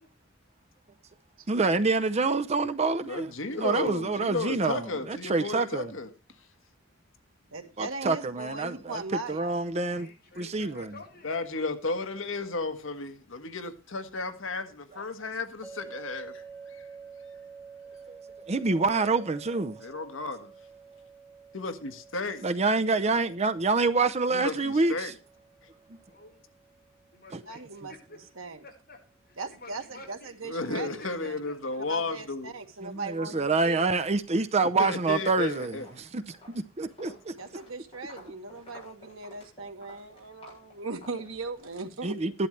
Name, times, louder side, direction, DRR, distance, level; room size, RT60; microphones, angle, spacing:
voice 1, 1.5-3.3 3.6-5.9 7.8-9.0 9.3-10.1 10.4-10.9 18.1-18.2 18.5-19.8 22.4-25.1 32.8-37.3 42.0-42.5, right 3 dB, 30° right, 0.6 m, -27 dB
voice 2, 3.0-6.1 11.2-16.4 16.8-16.9 19.8-20.5 21.5-22.4 24.3-25.1 30.4-32.5 33.3-33.4 34.6-35.8, left 3 dB, 70° left, 1.4 m, -33 dB
voice 3, 7.5-9.5 27.5-27.9 28.4-28.6 29.4-31.4 31.9-33.8 37.3-42.2, right 3 dB, 85° right, 1.9 m, -39 dB
voice 4, 9.8-11.7 11.9-12.4 26.1-26.4 27.1-28.2 28.6-29.0 29.3-30.3 31.0-31.8 32.9-33.0, left 2 dB, 50° left, 5.3 m, -50 dB
sound 1, 15.6-28.7, right 5 dB, 10° left, 1.4 m, -50 dB
Walk footsteps, 35.7-41.8, left 1 dB, 25° left, 8.0 m, -52 dB
14.5 x 11.5 x 3.2 m
head